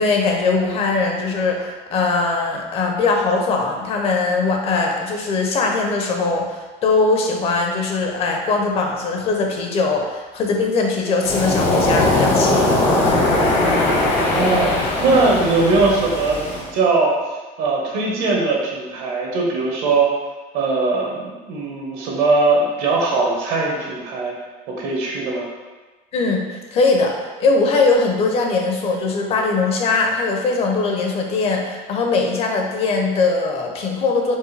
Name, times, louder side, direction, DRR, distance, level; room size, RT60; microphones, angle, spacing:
voice 1, 0.0-12.8 26.1-34.3, left 3 dB, 40° left, 2 dB, 0.5 m, -20 dB
Waves surf, 11.2-16.7, left 2 dB, 70° left, 1.0 m, -19 dB
voice 2, 14.2-17.2 17.6-20.1 20.5-24.3 24.7-25.5, right 3 dB, 75° right, -2 dB, 1.1 m, -20 dB
4.5 x 2.6 x 3.2 m, 1.2 s
cardioid pair, 160°, 16 cm